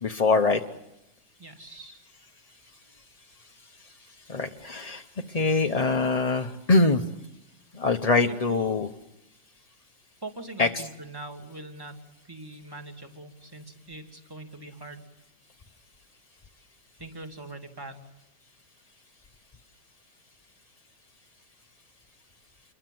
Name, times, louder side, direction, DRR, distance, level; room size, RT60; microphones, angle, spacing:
voice 1, 0.0-0.6 3.8-3.9 4.3-7.0 7.7-8.9 10.6-10.8, left 3 dB, 30° left, 4 dB, 0.7 m, -24 dB
voice 2, 1.4-2.0 8.2-8.6 10.2-15.0 17.0-18.0, right 2 dB, 10° right, 4 dB, 2.7 m, -42 dB
29.0 x 22.5 x 7.8 m, 0.88 s
omnidirectional pair, 2.0 m